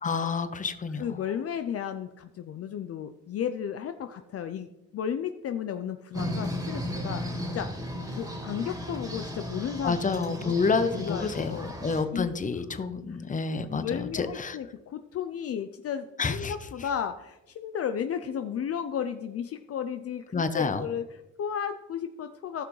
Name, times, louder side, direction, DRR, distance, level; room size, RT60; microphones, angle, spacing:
voice 1, 0.0-1.1 9.8-14.6 16.2-16.5 20.3-20.8, left 4 dB, 25° left, 10 dB, 0.8 m, -29 dB
voice 2, 1.0-7.9 8.1-10.0 10.2-10.3 10.9-11.7 12.1-12.3 13.7-22.6, left 8 dB, 50° left, 8 dB, 0.5 m, -34 dB
sound 1, 6.1-12.0, equal, 10° right, 2.2 m, -35 dB
14.5 x 5.9 x 3.2 m, 0.99 s
cardioid pair, 90°, 30 cm